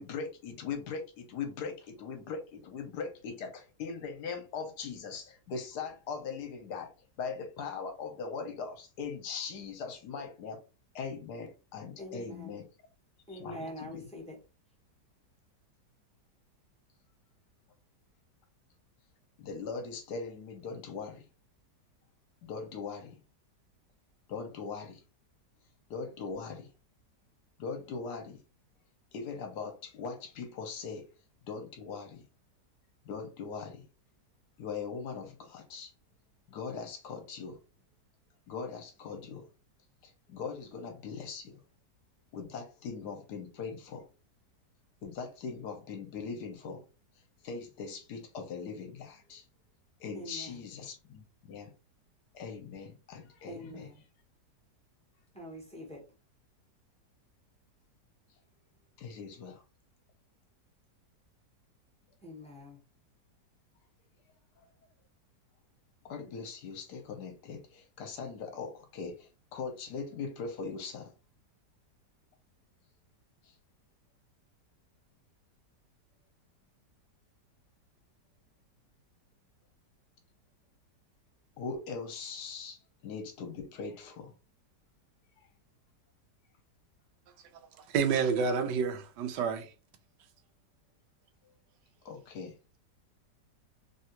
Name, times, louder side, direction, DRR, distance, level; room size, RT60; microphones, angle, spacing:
voice 1, 0.0-6.9 7.2-10.6 10.9-12.7 13.3-14.1 19.4-21.3 22.4-23.2 24.3-25.0 25.9-26.7 27.6-28.4 29.1-31.1 31.5-32.2 33.0-33.8 34.6-35.9 36.5-37.6 38.5-39.4 40.0-41.6 42.3-44.0 45.0-46.8 47.4-49.4 50.0-51.7 52.3-53.9 59.0-59.6 66.0-71.1 73.4-73.5 81.6-84.3 85.4-85.5 92.0-92.5, left 5 dB, 75° left, 1.2 m, -40 dB
voice 2, 12.0-12.6 13.3-14.4 50.1-50.6 53.4-54.0 55.3-56.1 62.2-62.8, equal, 5° left, 0.5 m, -44 dB
voice 3, 87.9-89.7, right 5 dB, 80° right, 1.2 m, -29 dB
3.2 x 2.4 x 2.8 m
omnidirectional pair, 1.9 m